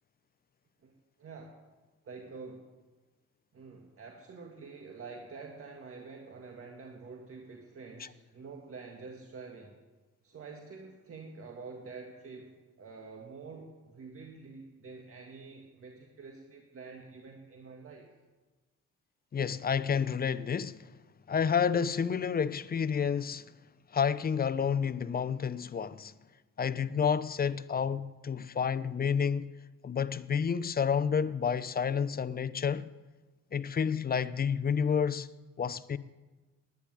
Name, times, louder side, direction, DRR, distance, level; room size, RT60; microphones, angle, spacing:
voice 1, 1.2-1.6 2.0-2.7 3.5-9.8 10.2-18.1, right 4 dB, 45° right, 1.8 m, -47 dB
voice 2, 19.3-20.9 21.3-23.5 23.9-26.1 26.6-29.5 29.8-32.9 33.5-35.3 35.6-36.0, left 7 dB, 30° left, 0.6 m, -30 dB
10.5 x 9.9 x 10.0 m
cardioid pair, 90°, 30 cm